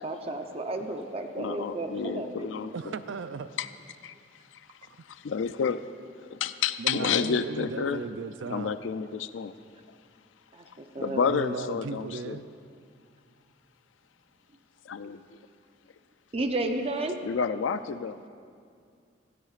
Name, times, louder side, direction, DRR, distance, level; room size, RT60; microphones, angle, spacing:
voice 1, 0.0-2.6 10.5-11.2 16.3-17.2, right 2 dB, 30° right, 5 dB, 0.7 m, -32 dB
voice 2, 1.4-2.9 3.6-3.7 4.0-4.1 5.1-5.8 6.3-8.0 8.5-9.5 11.0-12.4 14.9-15.2 17.2-18.3, left 6 dB, 90° left, 12 dB, 0.4 m, -30 dB
voice 3, 2.7-3.5 6.8-8.8 11.2-12.5, right 4 dB, 85° right, 12 dB, 0.4 m, -36 dB
16.0 x 15.5 x 2.5 m, 2.3 s
head